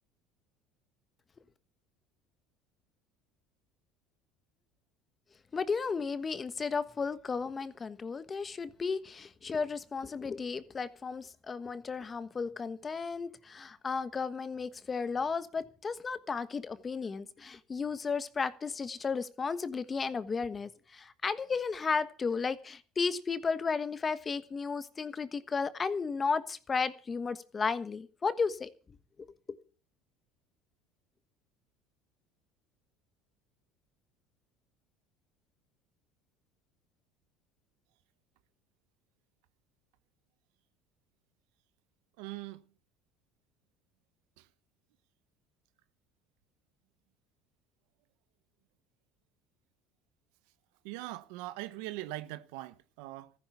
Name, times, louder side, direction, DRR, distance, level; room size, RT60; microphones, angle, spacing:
voice 1, 5.5-28.7, left 5 dB, 25° left, 1.3 m, -34 dB
voice 2, 42.2-42.6 44.4-44.5 50.8-53.3, right 17 dB, 80° right, 1.0 m, -41 dB
14.5 x 10.5 x 6.9 m
supercardioid pair, 110°, 0 cm